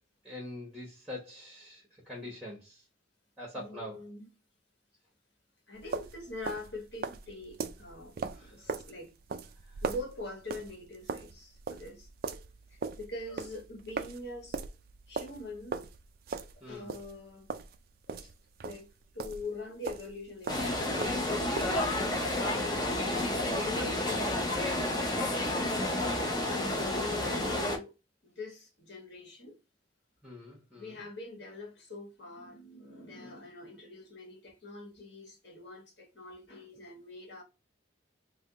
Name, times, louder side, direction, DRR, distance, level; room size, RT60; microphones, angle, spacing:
voice 1, 0.2-2.8 3.4-4.0 8.4-8.5 16.6-16.9 30.2-30.9, left 1 dB, ahead, 1.0 m, -44 dB
voice 2, 3.5-4.3 5.7-9.1 9.8-12.1 12.7-14.6 15.1-15.9 16.6-17.5 18.1-18.3 18.6-18.9 19.1-23.1 23.5-25.0 26.5-27.9 28.2-29.6 30.7-37.4, left 2 dB, 60° left, 1.3 m, -43 dB
sound 1, 5.8-19.6 19.8-22.0, right 5 dB, 50° right, 0.3 m, -40 dB
sound 2, 20.5-27.8, left 1 dB, 20° left, 0.7 m, -30 dB
3.3 x 2.2 x 3.7 m
head